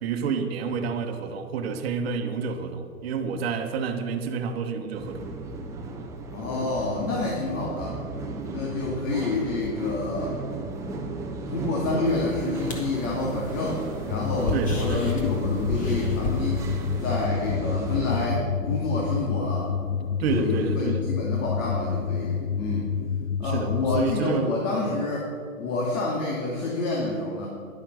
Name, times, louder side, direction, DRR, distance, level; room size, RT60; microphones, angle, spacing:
voice 1, 0.0-5.3 14.5-15.1 20.2-21.0 23.4-24.5 24.9-25.1, right 5 dB, 40° right, 1.2 m, -29 dB
sound 1, 4.9-18.3, right 2 dB, 5° right, 0.7 m, -35 dB
voice 2, 6.3-8.0 8.5-10.4 11.5-16.6 17.0-19.7 20.3-22.9 23.4-25.3 25.6-27.5, left 2 dB, 55° left, 2.9 m, -28 dB
sound 2, 12.1-17.3, left 1 dB, 15° left, 1.6 m, -37 dB
sound 3, 14.1-24.1, left 6 dB, 80° left, 0.7 m, -28 dB
11.5 x 10.0 x 6.3 m
hypercardioid pair, 140°, 45 cm